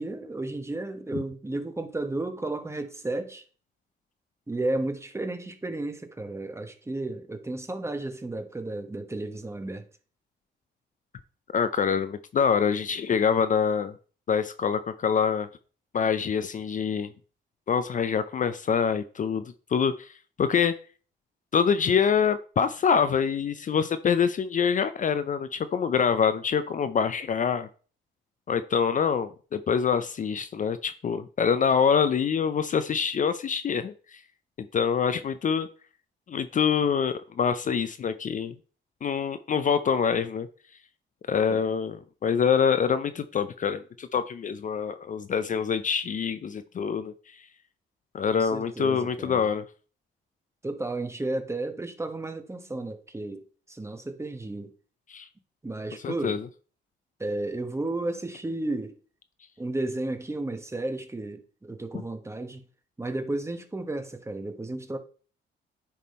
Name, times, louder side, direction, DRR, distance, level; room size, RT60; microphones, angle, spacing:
voice 1, 0.0-3.4 4.5-9.8 41.5-41.6 48.4-49.5 50.6-53.4 53.7-54.7 55.6-56.4 57.2-59.0 59.6-62.6 63.0-65.0, right 2 dB, 15° right, 1.1 m, -33 dB
voice 2, 11.5-13.9 14.3-15.5 15.9-17.1 17.7-19.4 19.7-20.1 20.4-20.8 21.5-27.7 28.5-34.2 34.6-35.7 36.3-38.5 39.0-40.5 41.3-47.1 48.1-49.6 55.1-55.3 56.0-56.5, left 6 dB, 40° left, 0.5 m, -25 dB
10.0 x 3.7 x 4.2 m
cardioid pair, 90°, 20 cm